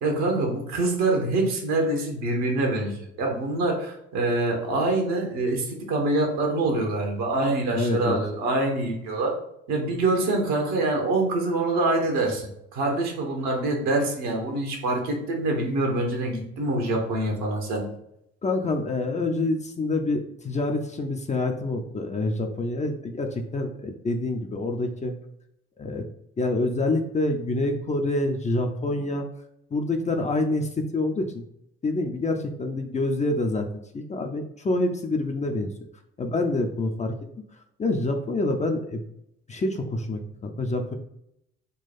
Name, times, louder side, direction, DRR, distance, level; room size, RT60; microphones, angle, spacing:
voice 1, 0.0-9.3 9.7-17.9, right 2 dB, 60° right, 1 dB, 1.2 m, -25 dB
voice 2, 7.7-8.2 18.4-25.1 25.8-26.0 26.4-29.3 29.7-31.4 31.8-33.7 33.9-35.7 36.2-37.2 37.8-39.0 39.5-40.9, left 2 dB, 25° left, 4 dB, 0.6 m, -27 dB
3.9 x 2.3 x 4.2 m, 0.77 s
figure-of-eight pair, 50°, 31 cm